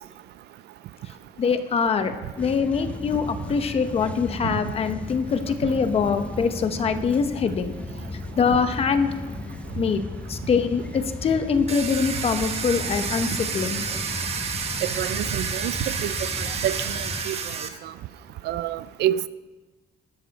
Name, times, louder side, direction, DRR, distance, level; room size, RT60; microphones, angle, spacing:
voice 1, 1.4-7.7 8.1-9.1 9.7-10.0 10.3-13.8, left 5 dB, 35° left, 9 dB, 0.9 m, -24 dB
sound 1, 2.4-17.2, left 2 dB, 5° left, 0.6 m, -36 dB
Domestic sounds home sounds, 11.7-17.7, right 6 dB, 40° right, 1.0 m, -30 dB
voice 2, 15.0-17.4 18.4-19.3, right 12 dB, 80° right, 16 dB, 0.5 m, -28 dB
13.0 x 12.5 x 4.1 m, 1.3 s
cardioid pair, 175°, 17 cm